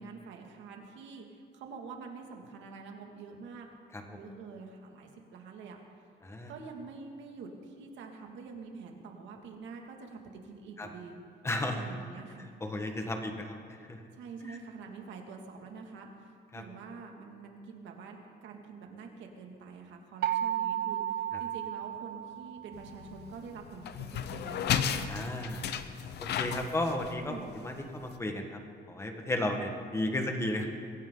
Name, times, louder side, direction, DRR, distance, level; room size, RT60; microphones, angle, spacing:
voice 1, 0.0-3.7 4.1-5.8 6.5-11.2 11.7-12.5 14.1-24.8 27.3-27.5 29.4-29.6, right 4 dB, 85° right, 2 dB, 2.3 m, -46 dB
voice 2, 11.4-11.8 12.3-14.0 14.5-14.6 16.5-16.6 21.3-21.4 25.1-25.7 26.2-28.6 28.9-30.7, left 1 dB, 15° left, 3 dB, 1.4 m, -34 dB
sound 1, 20.2-23.0, right 11 dB, 60° right, 0.5 m, -33 dB
sound 2, 22.7-28.1, left 8 dB, 65° left, 0.8 m, -35 dB
23.0 x 16.0 x 3.9 m, 2.2 s
cardioid pair, 170°, 19 cm